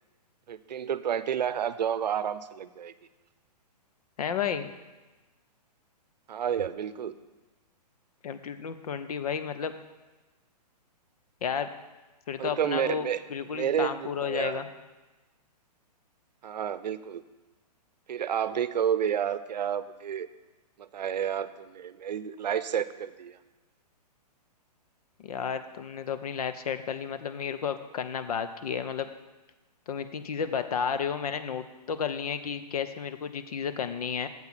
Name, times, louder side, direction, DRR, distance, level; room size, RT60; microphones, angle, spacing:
voice 1, 0.5-2.9 6.3-7.1 12.4-13.2 13.5-14.6 16.4-17.2 18.1-20.3 20.8-23.4, right 9 dB, 85° right, 14 dB, 0.6 m, -30 dB
voice 2, 4.2-4.7 8.2-9.7 11.4-11.7 12.3-14.7 25.2-29.1 29.9-34.3, left 7 dB, 60° left, 11 dB, 0.7 m, -32 dB
7.4 x 5.9 x 7.3 m, 1.2 s
hypercardioid pair, 160°, 21 cm